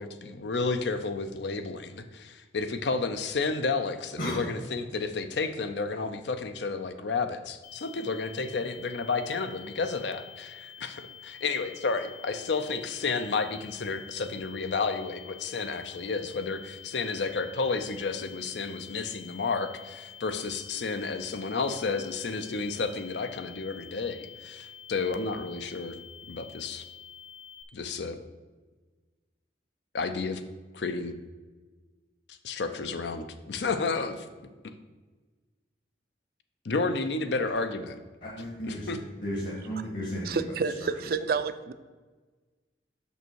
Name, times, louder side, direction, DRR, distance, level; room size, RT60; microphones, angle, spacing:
voice 1, 0.0-26.0 26.3-26.9 27.7-28.2 29.9-30.4 30.7-31.1 32.3-34.3 36.6-38.0 38.6-39.0, left 4 dB, 75° left, 9 dB, 0.6 m, -31 dB
sound 1, 7.6-27.6, left 8 dB, 25° left, 0.5 m, -48 dB
voice 2, 38.2-40.3 40.8-40.9, equal, 50° left, -4 dB, 1.4 m, -34 dB
voice 3, 40.3-41.7, right 5 dB, 55° right, 12 dB, 0.4 m, -29 dB
6.4 x 5.5 x 4.6 m, 1.3 s
head